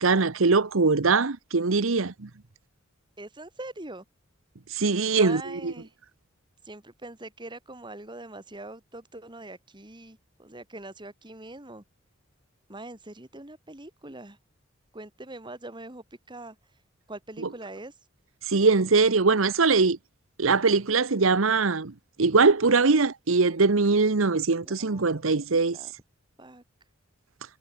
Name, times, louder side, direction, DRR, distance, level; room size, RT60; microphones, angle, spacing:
voice 1, 0.0-2.3 4.7-5.7 18.5-20.0 20.4-21.9 22.2-25.8, right 4 dB, 80° right, 1.0 m, -22 dB
voice 2, 3.2-4.0 5.1-5.9 6.6-11.8 12.7-14.4 14.9-16.6 17.1-17.9 24.5-25.2 25.7-25.9 26.4-26.6, right 2 dB, 25° right, 2.6 m, -43 dB
head